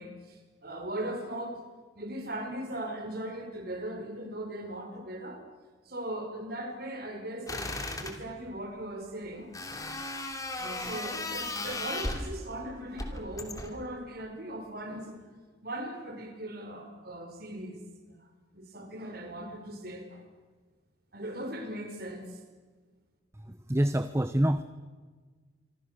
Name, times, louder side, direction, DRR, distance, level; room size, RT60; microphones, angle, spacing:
voice 1, 0.0-1.6 1.9-5.4 5.8-7.7 8.0-9.5 10.6-15.2 15.6-17.8 18.1-18.2 18.5-20.3 21.1-22.4, right 1 dB, 50° right, 5 dB, 4.6 m, -39 dB
sound 1, 7.5-8.2 9.5-12.3 13.0-13.8, left 2 dB, 20° left, 2.7 m, -36 dB
voice 2, 23.3-24.6, right 1 dB, 15° right, 11 dB, 0.8 m, -27 dB
26.5 x 25.5 x 6.6 m, 1.4 s
head